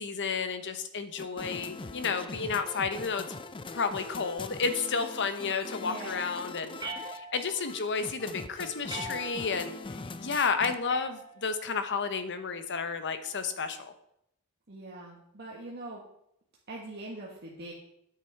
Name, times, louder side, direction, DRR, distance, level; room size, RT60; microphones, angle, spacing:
voice 1, 0.0-3.3 3.7-13.9, left 5 dB, 55° left, 9 dB, 1.0 m, -32 dB
sound 1, 1.2-10.7, left 3 dB, 20° left, 0.5 m, -42 dB
voice 2, 5.8-6.1 14.7-16.0 16.7-17.7, right 2 dB, 45° right, -3 dB, 1.6 m, -42 dB
sound 2, 6.8-7.7 8.9-9.7 10.9-11.7, right 2 dB, 20° right, 1.8 m, -41 dB
10.0 x 8.3 x 4.6 m, 0.76 s
head